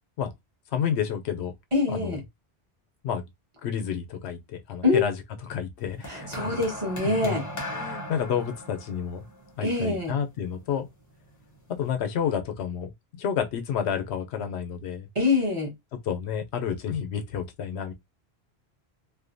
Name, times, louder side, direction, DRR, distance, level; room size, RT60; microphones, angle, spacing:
voice 1, 0.7-1.5 1.9-2.2 3.0-3.3 3.6-5.1 5.4-6.5 7.0-7.4 7.7-9.2 9.6-10.9 11.7-15.1 16.1-17.9, left 8 dB, 90° left, 0.9 m, -30 dB
voice 2, 1.7-2.2 4.8-5.0 6.0-7.4 9.6-10.1 15.1-15.7, left 3 dB, 30° right, 1.0 m, -25 dB
sound 1, 6.0-10.5 11.4-11.6, left 1 dB, 20° left, 0.6 m, -38 dB
2.6 x 2.1 x 2.5 m
omnidirectional pair, 1.1 m